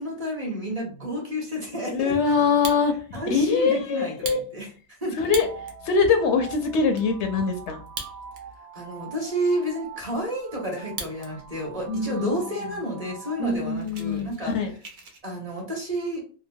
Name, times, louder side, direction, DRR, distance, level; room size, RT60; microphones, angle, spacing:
voice 1, 0.0-2.1 3.1-5.2 8.7-14.5 15.2-16.2, equal, 35° right, -2 dB, 1.0 m, -30 dB
voice 2, 1.9-2.9 3.3-4.4 5.2-5.5 5.8-7.8 11.9-12.4 13.4-14.7, left 5 dB, 75° left, 6 dB, 0.9 m, -23 dB
Fire, 2.4-3.2 3.6-3.7 4.1-5.8 6.3-6.4 6.6-7.1 7.8-8.6 8.9-9.0 9.6-11.3 11.6-12.1 12.6-12.7 13.0-13.2 13.5-15.2, right 4 dB, 55° right, 0.6 m, -39 dB
sound 1, 5.2-13.6, right 6 dB, 80° right, 1.1 m, -44 dB
2.9 x 2.1 x 2.6 m, 0.39 s
omnidirectional pair, 1.2 m